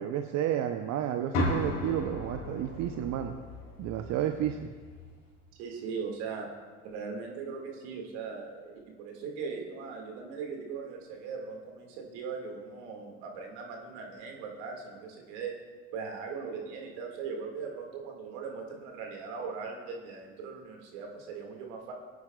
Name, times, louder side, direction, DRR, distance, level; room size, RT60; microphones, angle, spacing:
voice 1, 0.0-3.3 3.8-4.7, right 10 dB, 55° right, 6 dB, 0.7 m, -31 dB
sound 1, 1.3-5.3, left 2 dB, 60° left, 3.5 m, -35 dB
voice 2, 5.6-6.5 6.8-15.5 15.9-21.9, right 5 dB, 75° right, 1 dB, 2.0 m, -39 dB
18.5 x 9.4 x 2.3 m, 1.5 s
hypercardioid pair, 70°, 34 cm